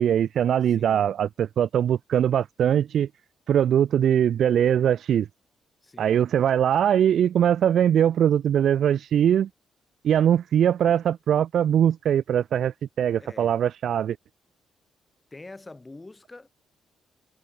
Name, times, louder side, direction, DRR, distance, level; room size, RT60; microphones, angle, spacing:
voice 1, 0.0-3.1 3.5-5.3 6.0-9.5 10.0-14.2, right 9 dB, 70° right, 0.6 m, -21 dB
voice 2, 0.6-1.1 5.8-6.3 13.2-13.6 15.3-16.5, left 2 dB, 20° left, 7.6 m, -45 dB
cardioid pair, 90°, 0 cm